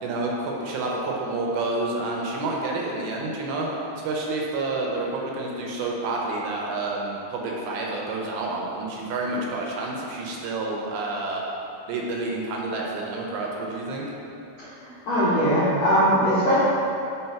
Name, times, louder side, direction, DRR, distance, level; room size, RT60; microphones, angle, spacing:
voice 1, 0.0-11.4 11.9-14.1, right 2 dB, 80° right, -2 dB, 2.6 m, -29 dB
voice 2, 14.8-16.6, equal, 70° left, -11 dB, 1.6 m, -20 dB
5.7 x 3.5 x 5.6 m, 2.7 s
omnidirectional pair, 4.5 m